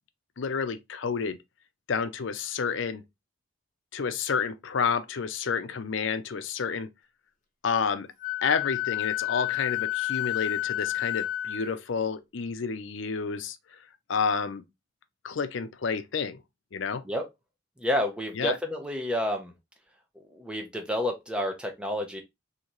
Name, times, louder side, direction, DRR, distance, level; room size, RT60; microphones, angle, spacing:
voice 1, 0.4-1.4 1.9-3.0 3.9-6.9 7.6-8.1 8.4-13.6 14.1-14.6 15.2-16.4 16.7-17.0 18.3-18.6, left 5 dB, 70° left, 0.5 m, -30 dB
Wind instrument woodwind instrument, 8.2-11.7, left 16 dB, 40° left, 0.8 m, -30 dB
voice 2, 17.8-19.5 20.3-22.2, equal, 5° right, 0.7 m, -29 dB
3.9 x 2.8 x 3.0 m
head